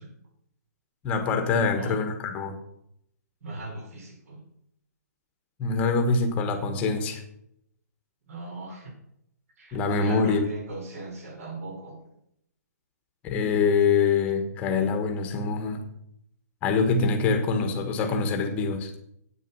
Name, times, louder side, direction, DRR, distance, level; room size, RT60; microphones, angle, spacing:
voice 1, 1.0-2.6 5.6-7.2 9.7-10.5 13.2-15.8 16.6-18.9, left 4 dB, 15° left, 6 dB, 1.3 m, -24 dB
voice 2, 1.6-2.0 3.4-4.4 8.3-8.9 9.6-12.0, right 2 dB, 55° right, 1 dB, 4.9 m, -39 dB
9.4 x 8.6 x 5.6 m, 0.74 s
hypercardioid pair, 165°, 9 cm